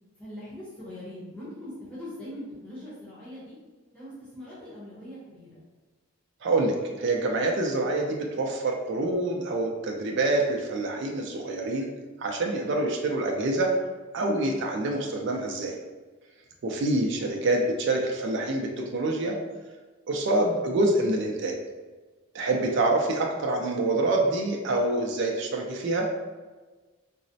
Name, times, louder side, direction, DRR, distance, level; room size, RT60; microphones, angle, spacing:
voice 1, 0.2-3.5 3.9-5.6, left 1 dB, 5° left, -11 dB, 0.8 m, -41 dB
voice 2, 6.4-11.9 12.2-13.7 14.1-15.7 16.6-19.4 20.1-21.5 22.3-26.1, right 2 dB, 55° right, 1 dB, 0.3 m, -26 dB
3.9 x 2.0 x 2.6 m, 1.3 s
head